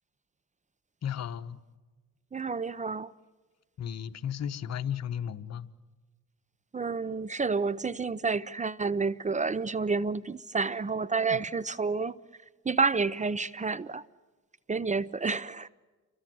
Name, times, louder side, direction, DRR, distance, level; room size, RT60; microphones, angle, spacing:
voice 1, 1.0-1.6 3.8-5.7 11.3-11.4, left 9 dB, 60° left, 1.3 m, -34 dB
voice 2, 2.3-3.1 6.7-12.1 12.6-14.0 14.7-15.7, right 4 dB, 25° right, 0.7 m, -29 dB
28.5 x 24.5 x 7.8 m
cardioid pair, 90°, 30 cm